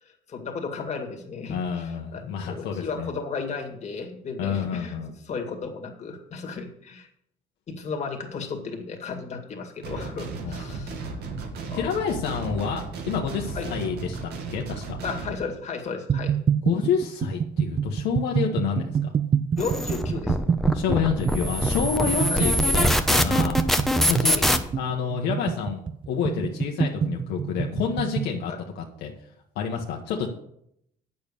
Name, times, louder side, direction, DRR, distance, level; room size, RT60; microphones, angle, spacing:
voice 1, 0.0-5.0 5.3-7.1 7.7-11.0 11.7-11.9 13.5-13.7 15.0-16.4 19.6-20.4 22.3-22.5 24.2-24.5 28.5-28.6, left 5 dB, 40° left, 2 dB, 2.1 m, -34 dB
voice 2, 1.5-3.1 4.4-5.1 10.4-10.6 11.7-15.0 16.6-19.1 20.7-23.6 24.1-24.4 24.8-29.1 29.5-30.3, left 7 dB, 80° left, 0 dB, 1.3 m, -28 dB
sound 1, 9.8-15.3, right 3 dB, 75° right, 2.1 m, -35 dB
sound 2, 16.1-28.4, right 7 dB, 30° right, 0.4 m, -27 dB
sound 3, 19.6-24.6, equal, ahead, 0.9 m, -23 dB
8.8 x 6.9 x 6.9 m, 0.73 s
cardioid pair, 110°, 17 cm